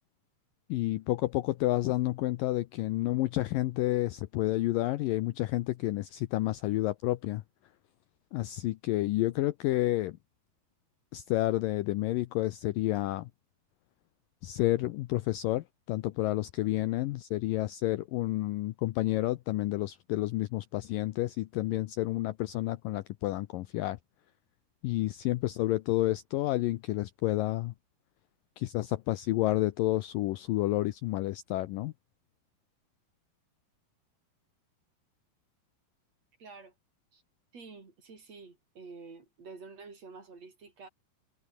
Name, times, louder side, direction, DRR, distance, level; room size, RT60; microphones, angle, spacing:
voice 1, 0.7-7.4 8.3-10.2 11.1-13.3 14.4-24.0 24.8-27.7 28.6-31.9, left 17 dB, 75° left, 2.1 m, -30 dB
voice 2, 36.4-36.7 37.1-37.2 37.5-40.9, right 4 dB, 40° right, 5.4 m, -49 dB
omnidirectional pair, 4.6 m